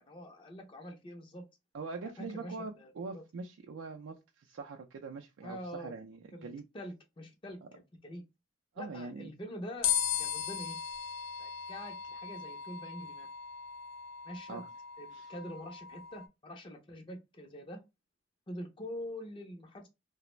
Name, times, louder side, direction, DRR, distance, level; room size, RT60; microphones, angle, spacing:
voice 1, 0.1-1.5 2.2-3.2 5.4-6.0 6.3-8.2 8.8-10.8 11.4-13.3 14.2-14.6 15.0-17.8 18.5-19.9, equal, 25° left, 0.4 m, -45 dB
voice 2, 1.7-6.6 8.7-9.3 14.5-14.7 15.1-15.3, right 4 dB, 85° right, 0.4 m, -43 dB
sound 1, 9.8-16.3, left 8 dB, 90° left, 0.5 m, -37 dB
2.4 x 2.0 x 3.0 m
head